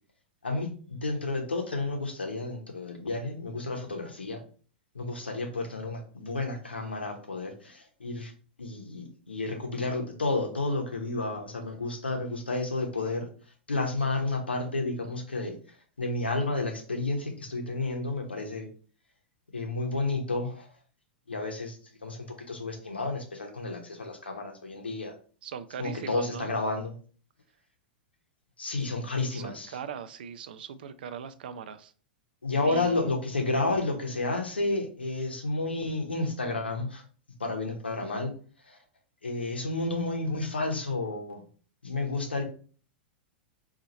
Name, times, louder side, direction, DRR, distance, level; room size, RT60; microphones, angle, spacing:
voice 1, 0.4-4.4 4.9-8.3 8.6-13.3 13.7-18.7 19.5-20.7 21.3-25.1 25.8-26.9 28.6-29.8 32.4-37.0 37.4-38.3 38.6-38.8 39.2-41.4 41.8-42.4, left 2 dB, 80° left, 3 dB, 0.8 m, -31 dB
voice 2, 25.4-26.5 28.8-28.9 29.3-31.9 32.6-33.0, right 6 dB, 60° right, 12 dB, 0.3 m, -40 dB
2.7 x 2.5 x 4.0 m, 0.41 s
figure-of-eight pair, 95°, 6 cm